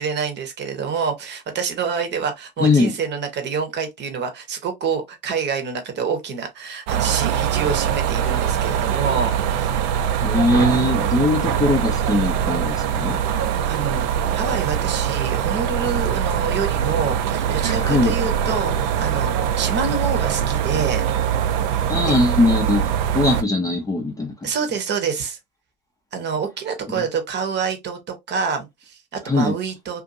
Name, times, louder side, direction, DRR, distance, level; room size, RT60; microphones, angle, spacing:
voice 1, 0.0-9.8 13.5-21.0 22.1-22.2 24.4-25.4 26.1-30.0, right 6 dB, 35° right, 1.0 m, -27 dB
voice 2, 2.6-2.9 10.2-13.2 17.6-18.1 21.9-24.5 26.9-27.0 29.2-29.5, left 2 dB, 10° left, 0.6 m, -20 dB
sound 1, 6.9-23.4, right 9 dB, 60° right, 0.6 m, -22 dB
2.6 x 2.5 x 2.6 m
hypercardioid pair, 90°, 29 cm